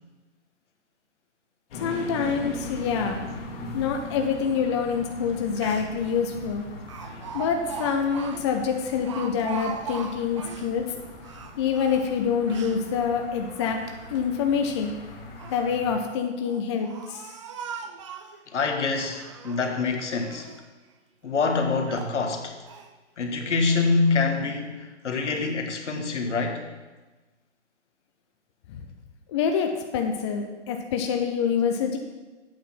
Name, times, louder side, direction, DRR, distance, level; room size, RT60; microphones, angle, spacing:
sound 1, 1.7-16.0, left 2 dB, 50° left, 2.1 m, -40 dB
voice 1, 1.7-3.2 3.7-6.7 7.3-10.8 11.6-13.8 14.1-14.9 15.5-17.3 28.7-28.8 29.3-32.0, left 6 dB, 25° left, 4 dB, 0.5 m, -26 dB
Speech, 5.3-5.4 5.6-6.1 6.9-10.7 11.2-12.8 13.4-14.2 15.1-15.7 16.4-18.4 19.0-19.8 20.2-20.7 21.2-21.3 21.9-22.2 22.7-22.9, right 7 dB, 25° right, 0.4 m, -40 dB
voice 2, 7.0-7.3 18.5-20.5 21.2-22.6 23.2-26.6, left 4 dB, 75° left, 4 dB, 1.6 m, -26 dB
8.4 x 6.5 x 5.8 m, 1.2 s
hypercardioid pair, 140°, 36 cm